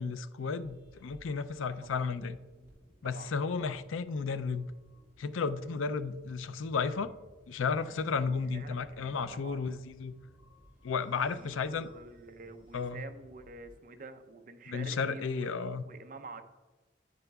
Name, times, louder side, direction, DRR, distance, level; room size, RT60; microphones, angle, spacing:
voice 1, 0.0-2.4 3.0-4.7 5.2-7.1 7.5-10.1 10.8-11.9 12.7-13.0 14.7-15.8, left 5 dB, 80° left, 0.4 m, -33 dB
sound 1, 0.6-13.8, equal, 10° right, 2.9 m, -60 dB
voice 2, 3.0-3.7 8.5-9.6 11.1-16.4, right 3 dB, 45° right, 0.6 m, -48 dB
9.7 x 9.3 x 2.3 m
head